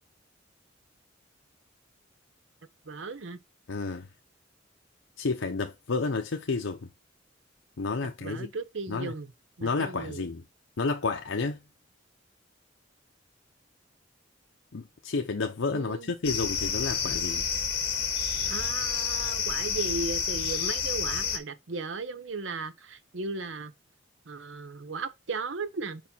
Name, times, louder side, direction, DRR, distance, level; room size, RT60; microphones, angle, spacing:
voice 1, 2.9-3.4 8.2-9.3 9.6-10.2 15.7-16.1 18.5-23.7 24.3-26.0, right 3 dB, 80° right, 0.8 m, -36 dB
voice 2, 3.7-4.1 5.2-6.9 7.8-8.5 8.9-9.1 9.6-10.4 10.8-11.6 14.7-17.5, left 4 dB, 85° left, 0.7 m, -30 dB
sound 1, 16.2-21.4, left 7 dB, 55° left, 1.7 m, -29 dB
5.1 x 4.7 x 5.5 m
head